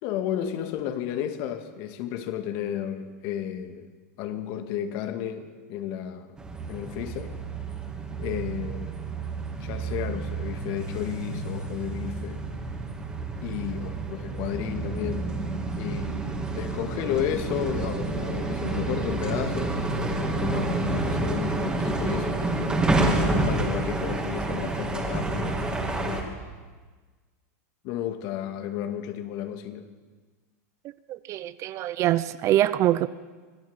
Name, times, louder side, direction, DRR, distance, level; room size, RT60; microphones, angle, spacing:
voice 1, 0.0-3.9 4.2-6.3 6.7-7.3 8.2-8.9 9.6-12.4 13.4-15.3 15.8-22.5 23.2-26.3 27.8-29.9, left 10 dB, 50° left, 2.2 m, -33 dB
sound 1, 6.4-26.2, right 2 dB, 10° right, 3.1 m, -29 dB
voice 2, 31.1-33.1, right 13 dB, 35° right, 0.7 m, -24 dB
26.0 x 18.0 x 7.2 m
supercardioid pair, 135°, 9 cm